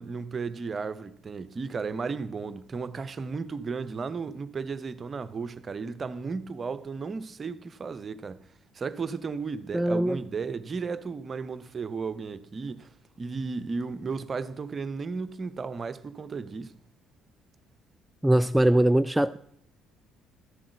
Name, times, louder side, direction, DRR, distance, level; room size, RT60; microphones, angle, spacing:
voice 1, 0.0-8.4 8.7-12.9 13.2-16.7, right 4 dB, 35° right, 0.9 m, -34 dB
voice 2, 9.7-10.2 18.2-19.4, right 1 dB, 10° right, 0.4 m, -22 dB
13.0 x 7.7 x 7.8 m
figure-of-eight pair, 50°, 0 cm